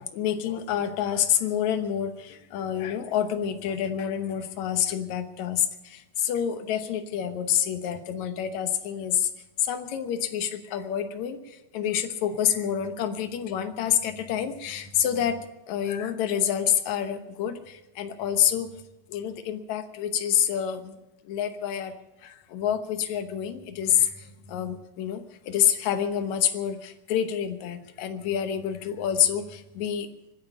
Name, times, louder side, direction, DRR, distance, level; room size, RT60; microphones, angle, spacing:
voice 1, 0.0-9.3 9.6-15.4 15.7-18.7 19.1-20.9 21.2-21.9 22.2-30.1, left 9 dB, 65° left, 8 dB, 2.0 m, -27 dB
24.0 x 10.5 x 5.4 m, 0.96 s
omnidirectional pair, 4.2 m